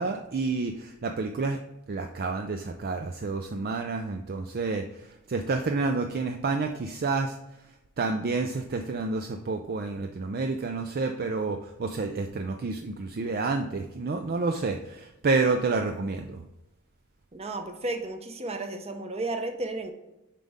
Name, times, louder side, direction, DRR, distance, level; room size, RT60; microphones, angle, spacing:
voice 1, 0.0-1.6 1.9-7.4 8.0-16.4, right 3 dB, 45° right, 5 dB, 0.4 m, -29 dB
voice 2, 17.3-19.9, right 2 dB, 30° right, 6 dB, 0.8 m, -33 dB
7.4 x 5.3 x 3.5 m, 0.93 s
head